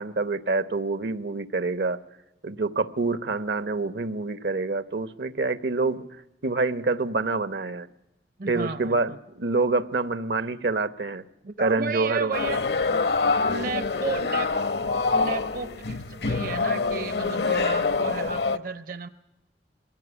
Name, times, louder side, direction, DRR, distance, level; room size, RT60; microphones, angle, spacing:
voice 1, 0.0-2.0 2.4-6.0 6.4-7.9 8.5-11.2 11.6-12.3, right 3 dB, 75° right, 13 dB, 1.0 m, -26 dB
voice 2, 8.4-9.2 11.4-12.7 13.4-14.5 15.1-19.1, right 4 dB, 50° right, 11 dB, 0.7 m, -33 dB
sound 1, 12.3-18.6, left 4 dB, 65° left, 0.9 m, -25 dB
22.5 x 16.5 x 9.7 m, 0.97 s
head